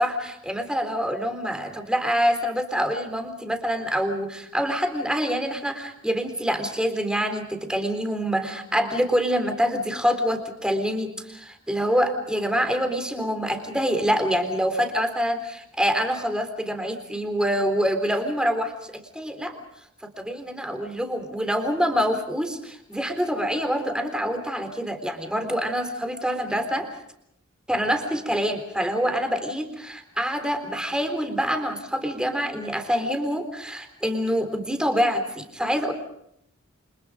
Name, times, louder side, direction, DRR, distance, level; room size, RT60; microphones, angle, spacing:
voice 1, 0.0-19.6 20.0-26.8 27.7-35.9, equal, 5° right, 7 dB, 3.7 m, -26 dB
29.5 x 25.5 x 5.1 m, 0.73 s
head